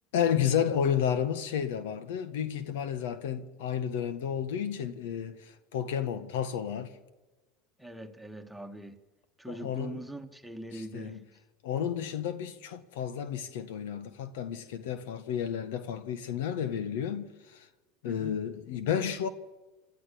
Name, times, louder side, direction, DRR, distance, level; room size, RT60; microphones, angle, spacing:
voice 1, 0.1-6.9 9.5-10.0 10.7-11.2 11.6-17.7 18.0-19.3, left 8 dB, 75° left, 1.6 m, -31 dB
voice 2, 7.8-9.0 9.4-11.2 18.0-18.4, right 1 dB, ahead, 2.0 m, -42 dB
28.0 x 13.5 x 7.2 m
hypercardioid pair, 90°, 0 cm